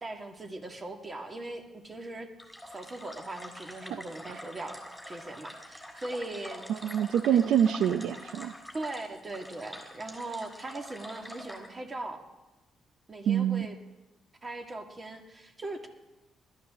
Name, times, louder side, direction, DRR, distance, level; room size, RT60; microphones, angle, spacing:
voice 1, 0.0-2.3 2.7-6.6 7.3-7.5 8.7-12.2 13.1-13.8 14.4-15.9, right 2 dB, 30° right, 4 dB, 2.0 m, -40 dB
sound 1, 2.4-11.7, left 1 dB, ahead, 3.9 m, -46 dB
voice 2, 6.7-8.5 13.3-13.7, right 9 dB, 80° right, 11 dB, 0.5 m, -26 dB
20.5 x 13.0 x 3.8 m, 1.0 s
cardioid pair, 90°, 0 cm